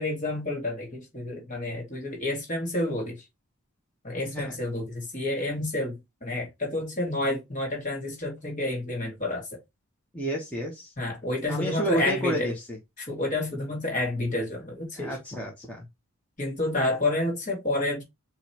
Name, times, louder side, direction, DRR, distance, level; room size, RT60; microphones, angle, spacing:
voice 1, 0.0-3.2 4.0-9.5 11.0-12.5 13.0-15.1 16.4-18.0, left 2 dB, 35° left, 2.2 m, -29 dB
voice 2, 4.2-4.6 10.1-10.9 11.5-12.8 14.9-15.9, right 1 dB, 5° left, 1.1 m, -31 dB
5.3 x 3.1 x 2.8 m
head